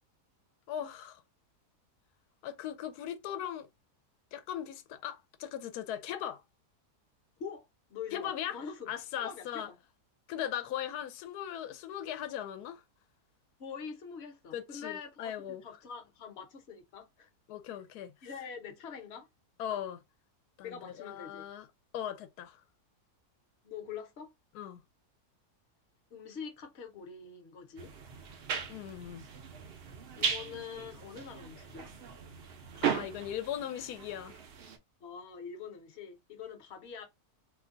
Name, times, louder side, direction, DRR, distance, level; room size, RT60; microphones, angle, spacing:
voice 1, 0.7-1.2 2.4-3.7 4.3-6.4 8.1-8.6 8.9-9.7 10.3-12.8 14.5-15.6 17.5-18.1 19.6-20.0 20.6-21.7 21.9-22.6 24.5-24.8 28.7-29.2 32.8-34.4, left 10 dB, 80° left, 1.1 m, -38 dB
voice 2, 7.4-8.9 9.2-9.8 13.6-15.3 15.6-17.3 18.2-19.3 19.7-19.8 20.6-21.5 23.6-24.3 26.1-27.9 30.1-31.9 35.0-37.0, left 6 dB, 50° left, 0.9 m, -44 dB
sound 1, 27.8-34.8, right 7 dB, 65° right, 0.6 m, -38 dB
2.8 x 2.2 x 3.7 m
omnidirectional pair, 1.7 m